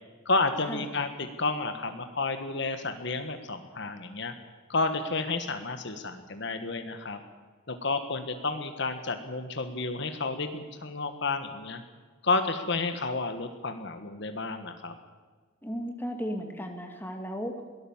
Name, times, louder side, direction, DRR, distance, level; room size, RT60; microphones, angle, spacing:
voice 1, 0.2-4.3 4.7-7.2 7.7-11.8 12.2-14.9, left 3 dB, 55° left, 8 dB, 1.5 m, -31 dB
voice 2, 15.6-17.5, equal, 10° left, 3 dB, 2.3 m, -35 dB
22.5 x 17.5 x 7.3 m, 1.5 s
head